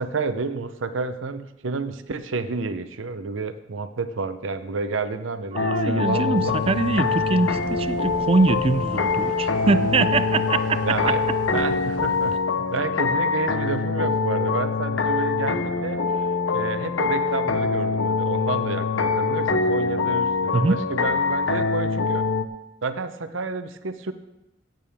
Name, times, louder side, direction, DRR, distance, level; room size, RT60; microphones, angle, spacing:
voice 1, 0.0-6.5 10.8-11.2 11.5-16.0 16.5-22.3 22.8-24.1, right 4 dB, 85° right, 10 dB, 0.7 m, -30 dB
voice 2, 5.5-11.1 20.5-20.9, right 3 dB, 30° right, 13 dB, 0.3 m, -23 dB
sound 1, 5.6-22.5, left 4 dB, 80° left, 0.7 m, -24 dB
sound 2, 6.4-12.4, right 2 dB, 60° right, 1.9 m, -37 dB
15.5 x 9.1 x 3.6 m, 0.97 s
head